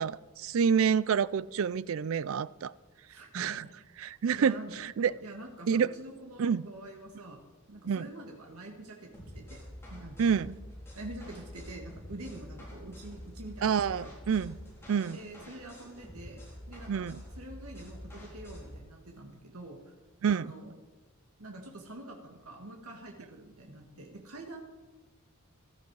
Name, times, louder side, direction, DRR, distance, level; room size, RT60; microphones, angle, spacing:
voice 1, 0.0-2.7 3.3-3.6 4.0-5.1 5.7-5.9 6.4-6.7 7.9-8.1 10.2-10.5 13.6-14.6 14.9-15.2 16.9-17.2 20.2-20.5, right 7 dB, 65° right, 19 dB, 0.4 m, -28 dB
voice 2, 3.1-3.8 4.4-4.7 5.2-7.4 7.7-9.6 9.9-10.5 10.9-13.8 14.0-14.3 15.1-16.4 16.7-17.1 17.4-19.9 20.3-20.7 21.4-24.6, right 2 dB, 80° right, 2 dB, 1.7 m, -46 dB
sound 1, 9.1-18.8, equal, 10° left, 4.3 m, -47 dB
15.0 x 13.0 x 4.7 m, 1.3 s
head